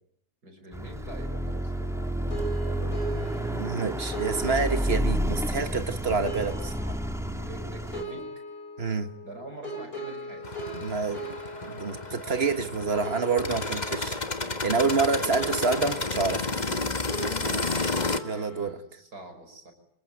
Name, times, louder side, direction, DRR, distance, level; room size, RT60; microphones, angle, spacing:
voice 1, 0.4-3.3 7.4-8.3 9.2-10.4 18.3-19.7, right 2 dB, 65° right, 6.2 m, -45 dB
Car passing by / Accelerating revving vroom, 0.7-8.0, equal, ahead, 1.6 m, -30 dB
sound 1, 2.3-18.7, right 1 dB, 55° left, 7.7 m, -40 dB
voice 2, 3.6-7.0 8.8-9.1 10.7-11.2 11.6-14.2 14.6-16.5 18.2-18.8, right 4 dB, 40° right, 1.6 m, -28 dB
Operating a Plate Compactor, 10.4-18.2, left 3 dB, 25° left, 1.5 m, -31 dB
25.5 x 21.5 x 9.4 m
omnidirectional pair, 1.8 m